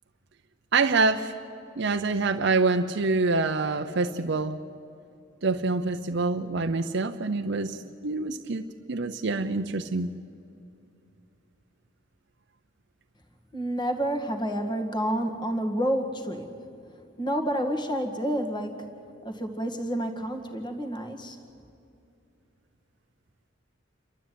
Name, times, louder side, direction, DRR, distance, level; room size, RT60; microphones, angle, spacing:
voice 1, 0.7-1.3 1.8-4.6 5.4-10.1, right 3 dB, 55° right, 6 dB, 0.7 m, -26 dB
voice 2, 13.5-16.5 17.2-18.8 19.2-21.4, equal, 20° left, 4 dB, 1.9 m, -29 dB
28.5 x 13.0 x 9.3 m, 2.6 s
head